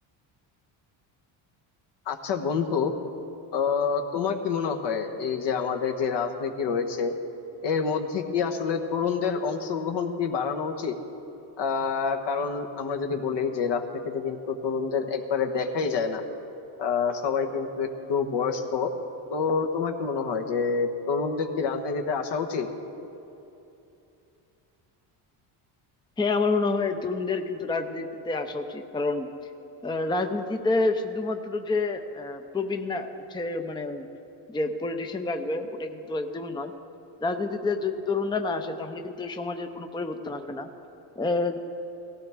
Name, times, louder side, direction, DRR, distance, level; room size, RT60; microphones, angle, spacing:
voice 1, 2.1-2.9 3.5-7.1 7.6-11.0 11.6-16.2 16.8-18.9 19.3-22.7, left 5 dB, 60° left, 5 dB, 1.4 m, -27 dB
voice 2, 26.2-29.3 29.8-34.1 34.5-36.7 37.2-40.7 41.2-41.6, left 3 dB, 10° left, 6 dB, 0.7 m, -28 dB
17.5 x 16.0 x 3.6 m, 2.9 s
cardioid pair, 100°, 48 cm